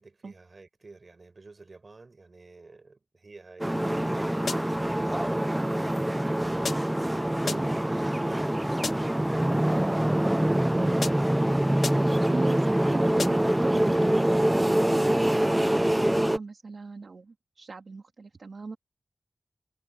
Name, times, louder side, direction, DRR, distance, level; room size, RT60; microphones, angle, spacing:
voice 1, 0.0-4.1 4.5-11.2 12.1-12.4, right 3 dB, 50° right, 7.4 m, -50 dB
sound 1, 3.6-16.4, right 1 dB, 10° right, 0.3 m, -25 dB
sound 2, 4.5-4.9 6.6-7.1 7.5-7.9 8.8-9.3 11.0-11.4 11.8-12.3 13.2-13.6, left 4 dB, 85° left, 1.3 m, -36 dB
voice 2, 11.9-15.0 15.3-18.8, right 4 dB, 75° right, 1.8 m, -40 dB
wide cardioid pair, 90°, 0 cm